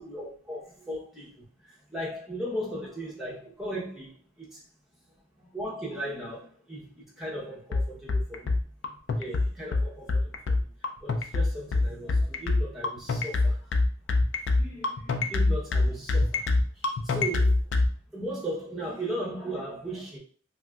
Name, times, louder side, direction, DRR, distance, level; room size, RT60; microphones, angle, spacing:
voice 1, 0.0-1.4 1.9-4.6 5.5-8.6 9.2-10.7 11.0-13.6 14.6-16.5 16.8-17.6 18.1-20.2, right 1 dB, ahead, -6 dB, 0.8 m, -37 dB
sound 1, 7.7-17.9, left 3 dB, 75° left, 0.4 m, -24 dB
3.3 x 2.5 x 2.3 m, 0.43 s
head